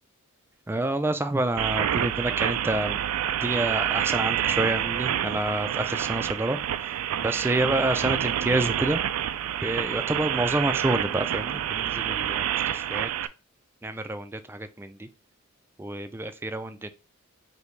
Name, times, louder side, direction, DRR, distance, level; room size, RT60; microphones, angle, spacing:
voice 1, 0.7-3.0 3.4-9.0 9.6-13.1 13.8-15.1 15.8-16.9, right 2 dB, 10° right, 10 dB, 0.3 m, -28 dB
sound 1, 1.6-13.3, right 10 dB, 85° right, 0.3 m, -28 dB
5.0 x 2.7 x 3.1 m, 0.34 s
head